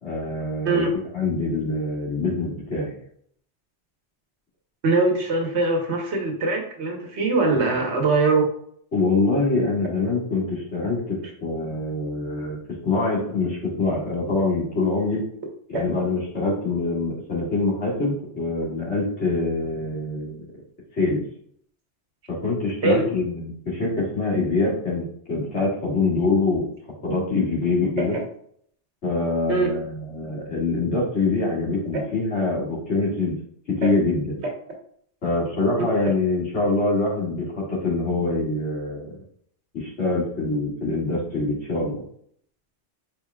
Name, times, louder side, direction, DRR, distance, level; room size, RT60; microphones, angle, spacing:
voice 1, 0.0-3.0 8.9-12.6 12.8-15.2 15.7-20.5 20.9-21.2 22.3-26.6 27.0-28.2 29.0-33.4 33.7-34.4 35.2-39.1 39.7-42.0, left 3 dB, 75° left, -6 dB, 2.2 m, -24 dB
voice 2, 4.8-8.5 15.7-15.8 22.8-23.0 28.0-28.2 29.5-29.7 33.8-33.9, right 3 dB, 70° right, 2 dB, 1.2 m, -22 dB
4.7 x 3.9 x 2.2 m, 0.65 s
omnidirectional pair, 1.2 m